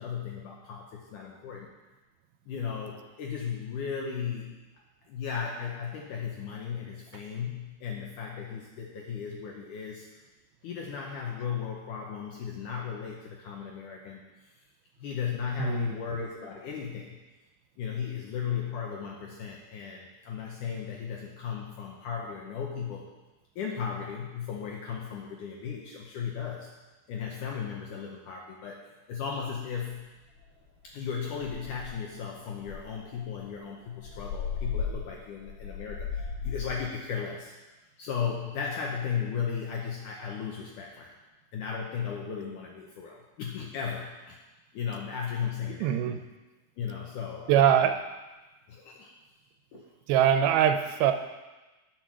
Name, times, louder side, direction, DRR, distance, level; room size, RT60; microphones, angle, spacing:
voice 1, 0.0-1.7 2.5-4.5 5.1-10.1 10.6-14.2 15.0-17.2 17.8-23.1 23.6-26.7 27.1-30.1 30.8-37.5 38.0-41.1 41.5-44.4 44.7-46.0 46.8-47.9 48.7-49.1 49.7-49.9, left 7 dB, 75° left, 0 dB, 1.9 m, -36 dB
sound 1, 30.4-30.7 31.0-31.1 31.4-32.1 32.6-36.8, left 6 dB, 50° left, 2.8 m, -36 dB
voice 2, 45.8-46.2 47.5-48.0 50.1-51.1, right 10 dB, 80° right, 8 dB, 2.3 m, -22 dB
10.5 x 6.1 x 6.1 m, 1.1 s
omnidirectional pair, 4.6 m